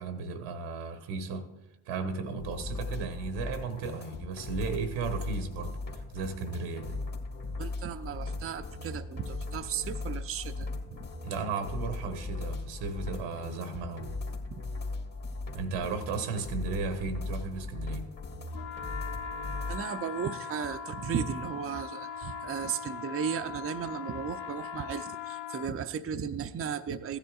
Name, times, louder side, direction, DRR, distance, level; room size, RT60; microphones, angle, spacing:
voice 1, 0.0-1.4 1.9-7.0 11.2-14.1 15.5-18.1, right 4 dB, 80° right, 8 dB, 1.1 m, -35 dB
sound 1, 2.4-19.8, left 3 dB, 45° left, 1.8 m, -38 dB
voice 2, 7.6-11.1 14.5-14.6 19.7-27.2, right 7 dB, 30° right, 8 dB, 0.5 m, -35 dB
sound 2, 18.5-25.7, left 6 dB, 80° left, 0.7 m, -40 dB
15.0 x 10.0 x 2.4 m, 0.97 s
hypercardioid pair, 45°, 48 cm